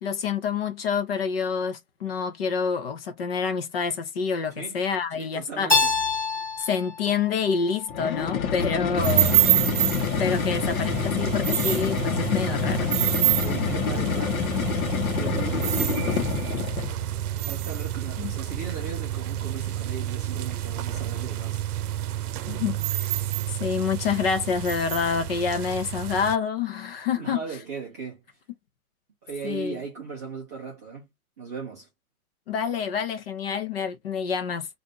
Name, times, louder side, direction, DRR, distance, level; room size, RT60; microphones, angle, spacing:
voice 1, 0.0-5.7 6.6-9.4 10.2-12.9 18.2-18.3 22.5-22.8 23.0-23.1 23.6-27.4 29.4-29.8 32.5-34.7, left 6 dB, 40° left, 0.7 m, -27 dB
voice 2, 5.1-5.9 13.4-16.1 17.5-21.6 27.1-28.2 29.2-31.1 31.4-31.9, right 5 dB, 10° right, 0.5 m, -37 dB
Keyboard (musical), 5.7-8.5, left 4 dB, 15° left, 2.0 m, -27 dB
sound 1, 7.9-17.0, left 7 dB, 70° left, 1.0 m, -27 dB
sound 2, 9.0-26.4, right 12 dB, 85° right, 0.7 m, -28 dB
3.7 x 2.5 x 2.7 m
hypercardioid pair, 175°, 44 cm